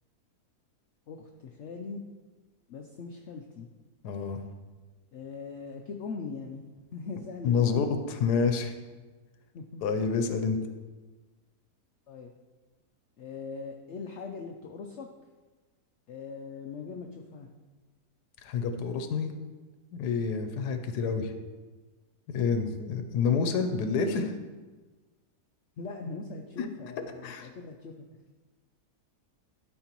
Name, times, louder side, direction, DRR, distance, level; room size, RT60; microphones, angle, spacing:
voice 1, 1.1-2.0 2.7-3.7 5.1-7.7 9.5-9.8 12.1-12.3 13.2-15.1 16.1-17.5 25.8-27.9, left 4 dB, 65° left, 3 dB, 0.7 m, -41 dB
voice 2, 4.0-4.4 7.4-8.7 9.8-10.6 18.4-19.3 19.9-21.3 22.3-24.3 26.6-26.7 27.2-27.5, left 5 dB, 90° left, 7 dB, 1.2 m, -28 dB
12.5 x 4.4 x 3.0 m, 1.3 s
omnidirectional pair, 1.7 m